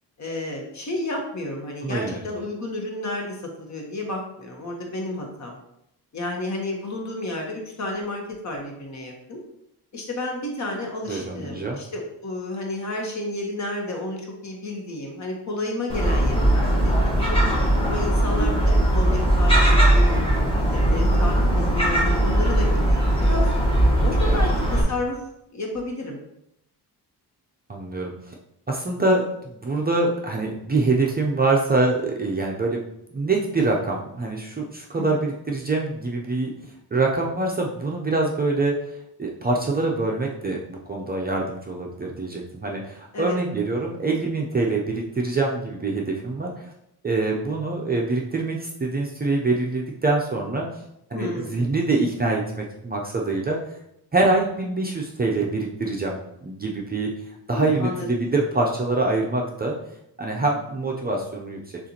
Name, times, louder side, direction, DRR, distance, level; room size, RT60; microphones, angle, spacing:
voice 1, 0.2-5.6 6.1-9.4 9.9-17.2 17.8-18.6 18.9-20.2 20.6-23.5 24.0-25.2 25.5-26.2 34.9-35.2 43.1-43.4 51.1-51.6 57.5-58.1, left 2 dB, 45° left, 0 dB, 1.1 m, -31 dB
voice 2, 1.8-2.2 11.1-11.8 24.3-24.4 27.7-28.3 28.7-32.8 33.1-36.5 36.9-38.7 39.2-46.7 47.0-50.7 51.1-53.6 54.1-57.1 57.5-59.8 60.2-61.6, right 3 dB, 25° right, -1 dB, 0.5 m, -25 dB
Gull seagull, 15.9-24.8, right 1 dB, 15° left, 1.1 m, -19 dB
6.6 x 2.5 x 2.9 m, 0.79 s
wide cardioid pair, 120°, 40 cm